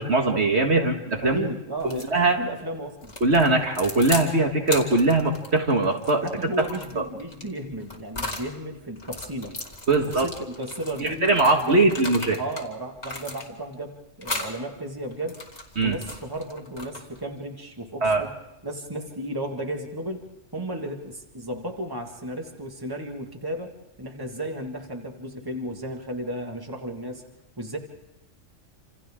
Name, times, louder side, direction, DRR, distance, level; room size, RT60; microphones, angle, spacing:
voice 1, 0.0-1.5 1.9-2.4 3.2-6.3 7.0-7.1 9.9-10.3 11.0-12.4 15.8-16.0 18.0-18.2, right 2 dB, 60° right, 2 dB, 1.9 m, -21 dB
voice 2, 1.2-3.1 6.2-9.6 10.0-11.9 12.4-15.4 15.8-18.3 18.6-20.2 20.5-23.7 24.0-27.2 27.6-27.8, right 1 dB, 15° right, 2 dB, 1.9 m, -34 dB
sound 1, 1.8-2.1 3.0-4.3 4.6-8.5 9.0-12.7 13.0-13.7 14.2-14.6 15.1-17.2, left 2 dB, 35° left, 2.4 m, -36 dB
27.5 x 27.5 x 3.7 m, 0.92 s
omnidirectional pair, 1.3 m